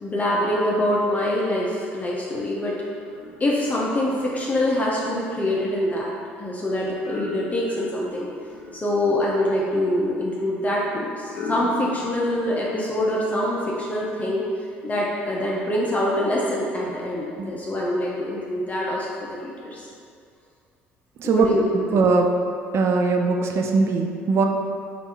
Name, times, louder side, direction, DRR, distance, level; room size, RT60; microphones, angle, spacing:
voice 1, 0.0-2.7 3.4-6.1 6.4-8.3 8.7-19.1 19.4-19.9 21.2-21.6, left 1 dB, 25° left, -5 dB, 0.6 m, -25 dB
sound 1, 3.0-12.6, left 2 dB, 60° left, 0.7 m, -39 dB
voice 2, 21.7-22.3 22.7-24.4, right 4 dB, 45° right, 3 dB, 0.4 m, -20 dB
3.4 x 2.5 x 4.1 m, 2.3 s
figure-of-eight pair, 55°, 6 cm